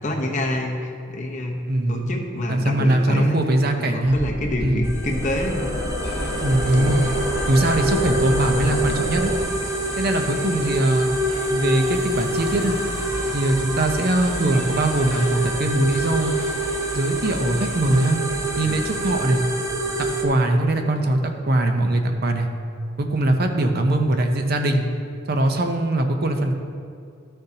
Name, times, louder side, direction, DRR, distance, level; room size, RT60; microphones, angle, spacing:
voice 1, 0.0-1.6 1.9-3.4 3.8-5.8 6.6-7.0 8.5-9.0 18.6-18.8, left 1 dB, 40° left, 0 dB, 1.0 m, -27 dB
voice 2, 1.7-2.1 2.5-4.2 4.6-4.9 6.4-7.0 7.5-9.3 10.0-11.1 11.5-12.8 13.3-16.3 16.9-18.2 18.6-19.4 20.0-22.5 23.0-24.9 25.3-26.6, right 1 dB, 55° right, 5 dB, 0.7 m, -21 dB
sound 1, 4.0-9.4, left 1 dB, 55° left, 1.9 m, -29 dB
sound 2, 4.8-20.2, right 1 dB, 15° right, 0.8 m, -27 dB
sound 3, 6.0-19.1, equal, 10° left, 2.1 m, -37 dB
13.0 x 6.8 x 2.8 m, 2.3 s
head